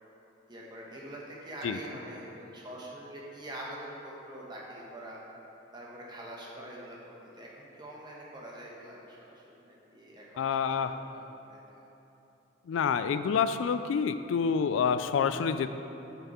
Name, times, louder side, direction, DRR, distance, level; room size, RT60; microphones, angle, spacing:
voice 1, 0.5-5.3 5.7-11.8, right 1 dB, 20° right, -4 dB, 1.0 m, -45 dB
voice 2, 10.4-11.0 12.7-15.7, left 6 dB, 85° left, 11 dB, 0.3 m, -28 dB
6.9 x 5.9 x 4.2 m, 2.9 s
head